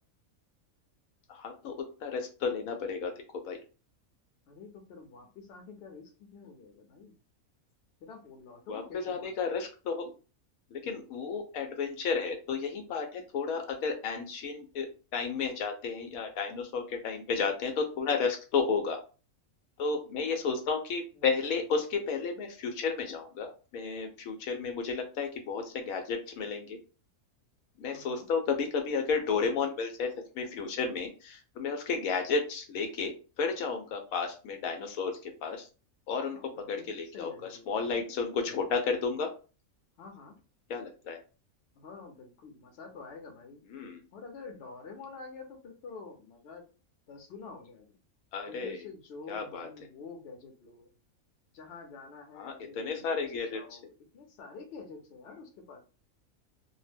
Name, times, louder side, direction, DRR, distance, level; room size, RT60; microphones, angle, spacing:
voice 1, 1.3-3.1 3.4-3.6 8.7-10.1 10.7-14.9 15.1-19.0 19.8-26.8 27.8-35.7 36.1-36.4 36.7-37.3 37.7-39.3 40.7-41.2 43.7-44.0 48.3-48.8 49.3-49.7 52.4-53.6, left 5 dB, 80° left, 5 dB, 1.0 m, -32 dB
voice 2, 4.5-7.2 8.0-9.5 21.1-21.4 27.9-28.3 36.3-38.6 40.0-40.4 41.7-43.6 44.1-46.6 47.1-48.0 48.5-50.9 51.5-55.8, left 4 dB, 55° left, 3 dB, 0.8 m, -48 dB
2.4 x 2.0 x 3.3 m, 0.35 s
omnidirectional pair, 1.5 m